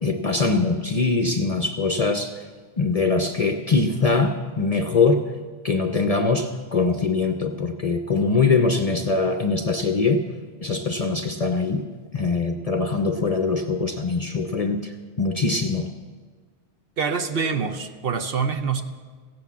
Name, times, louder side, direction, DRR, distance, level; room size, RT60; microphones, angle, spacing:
voice 1, 0.0-2.4 2.8-5.2 5.6-10.2 10.6-11.8 12.1-15.9, left 4 dB, 40° left, 7 dB, 0.6 m, -22 dB
voice 2, 17.0-18.8, right 5 dB, 60° right, 8 dB, 0.9 m, -25 dB
15.5 x 8.3 x 7.3 m, 1.5 s
omnidirectional pair, 1.2 m